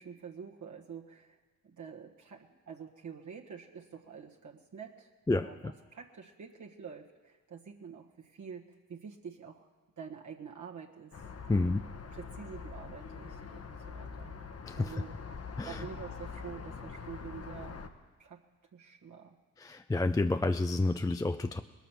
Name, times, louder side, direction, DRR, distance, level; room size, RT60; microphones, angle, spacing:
voice 1, 0.0-1.4 1.6-9.7 10.0-11.2 11.5-11.8 12.1-14.3 14.7-15.2 15.6-17.8 18.2-18.4 18.7-19.4, right 7 dB, 50° right, 0 dB, 1.4 m, -47 dB
voice 2, 5.3-5.7 11.5-11.8 14.6-14.9 15.6-15.9 19.6-21.6, left 2 dB, 10° left, 9 dB, 0.4 m, -30 dB
sound 1, 11.1-17.9, left 5 dB, 40° left, 1.2 m, -44 dB
20.0 x 7.2 x 6.0 m, 1.3 s
hypercardioid pair, 45°, 38 cm